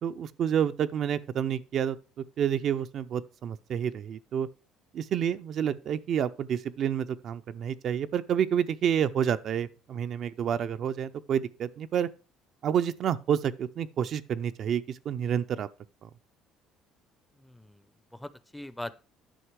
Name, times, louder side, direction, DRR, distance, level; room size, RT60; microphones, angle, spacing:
voice 1, 0.0-4.5 4.9-12.1 12.6-15.7 16.0-16.1, right 9 dB, 50° right, 0.4 m, -29 dB
voice 2, 17.4-19.0, left 1 dB, 5° left, 0.5 m, -42 dB
10.0 x 5.7 x 4.6 m
cardioid pair, 120°, 0 cm